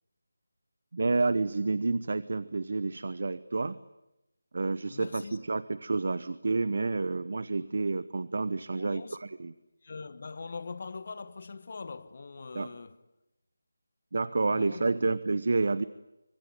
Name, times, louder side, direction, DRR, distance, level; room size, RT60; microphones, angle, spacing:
voice 1, 0.9-3.8 4.5-9.0 9.4-9.5 12.5-12.7 14.1-15.8, right 3 dB, 55° right, 1.0 m, -29 dB
voice 2, 4.9-5.4 8.7-9.2 9.8-13.1 14.4-15.1, left 4 dB, 45° left, 1.2 m, -42 dB
25.5 x 24.0 x 9.1 m
figure-of-eight pair, 165°, 0 cm